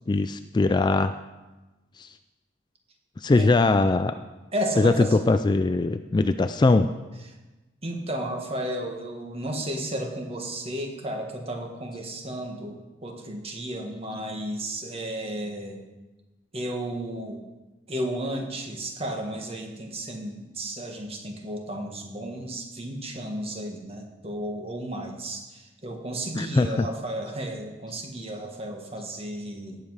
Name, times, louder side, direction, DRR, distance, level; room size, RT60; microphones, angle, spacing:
voice 1, 0.1-1.1 2.0-2.1 3.2-4.2 4.8-6.9 26.3-26.9, left 3 dB, 25° left, 10 dB, 0.3 m, -21 dB
voice 2, 4.5-5.2 7.8-15.8 16.5-17.4 17.9-29.8, right 1 dB, 30° right, 3 dB, 1.6 m, -33 dB
17.5 x 7.5 x 4.8 m, 1.1 s
head